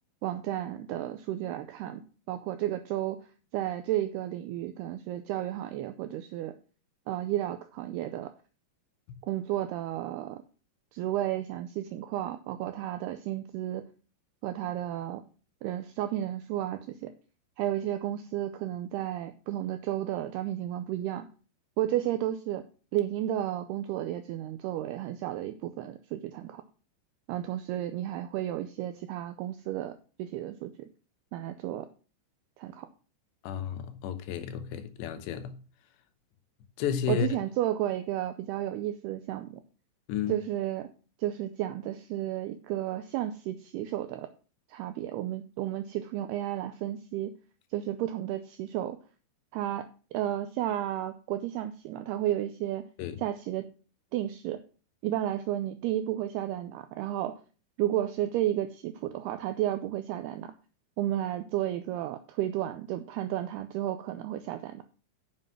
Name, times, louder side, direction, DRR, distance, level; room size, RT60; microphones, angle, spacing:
voice 1, 0.2-3.2 3.5-6.6 7.1-8.3 9.3-10.4 10.9-13.8 14.4-15.2 15.6-17.1 17.6-21.3 21.8-22.7 22.9-26.6 27.3-30.9 31.3-31.9 32.6-32.9 37.1-39.6 40.3-40.9 41.2-44.3 44.7-47.3 47.7-49.0 49.5-52.8 53.2-53.7 54.1-54.6 55.0-57.4 57.8-60.5 61.0-64.8, right 13 dB, 90° right, 2.3 m, -32 dB
voice 2, 33.4-35.6 36.8-37.3 40.1-40.3 53.0-53.2, left 9 dB, 75° left, 3.0 m, -32 dB
7.6 x 7.4 x 6.1 m
omnidirectional pair, 5.3 m